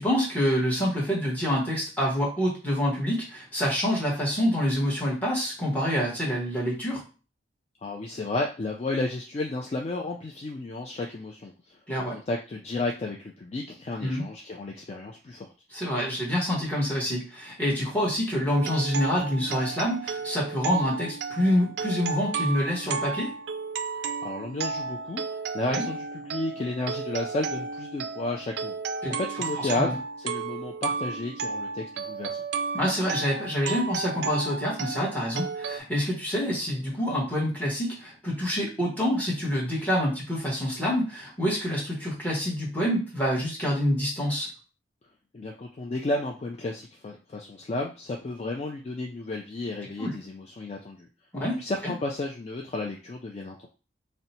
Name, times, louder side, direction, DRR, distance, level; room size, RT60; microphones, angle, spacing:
voice 1, 0.0-7.0 11.9-12.2 14.0-14.2 15.7-23.3 25.7-25.8 29.0-29.2 29.6-29.9 32.7-44.5 50.0-50.1 51.3-51.9, equal, 10° left, -4 dB, 1.1 m, -27 dB
voice 2, 7.8-11.8 12.1-15.5 24.2-28.8 29.2-32.4 45.3-51.1 51.6-53.7, left 2 dB, 35° left, 1 dB, 0.3 m, -32 dB
sound 1, 18.5-35.8, right 4 dB, 65° right, 0.3 m, -33 dB
2.7 x 2.1 x 4.1 m, 0.33 s
head